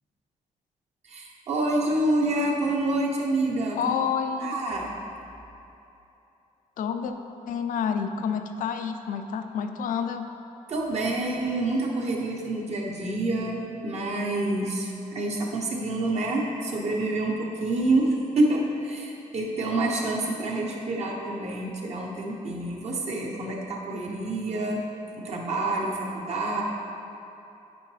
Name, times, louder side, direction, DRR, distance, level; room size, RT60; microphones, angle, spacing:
voice 1, 1.1-3.8 4.4-4.9 10.7-24.8 25.2-26.6, right 2 dB, 55° right, -1 dB, 1.0 m, -27 dB
voice 2, 3.7-4.6 6.8-7.1 7.5-10.3, left 7 dB, 85° left, 7 dB, 0.4 m, -29 dB
9.0 x 4.5 x 3.4 m, 2.9 s
cardioid pair, 135°, 14 cm